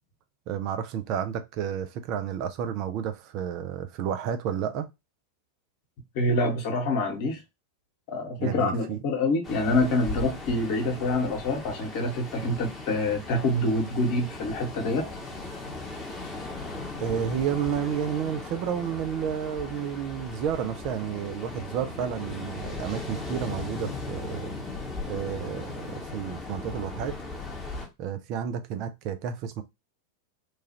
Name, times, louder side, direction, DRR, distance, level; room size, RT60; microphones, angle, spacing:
voice 1, 0.5-4.9 8.4-9.0 12.4-12.6 17.0-24.5 25.1-27.2 28.0-29.6, right 8 dB, 40° right, 0.4 m, -31 dB
voice 2, 6.1-7.4 8.1-15.2, left 2 dB, 45° left, 1.0 m, -26 dB
Ocean, 9.4-27.9, left 3 dB, 15° left, 0.9 m, -38 dB
3.0 x 2.3 x 2.9 m
figure-of-eight pair, 90°, 0 cm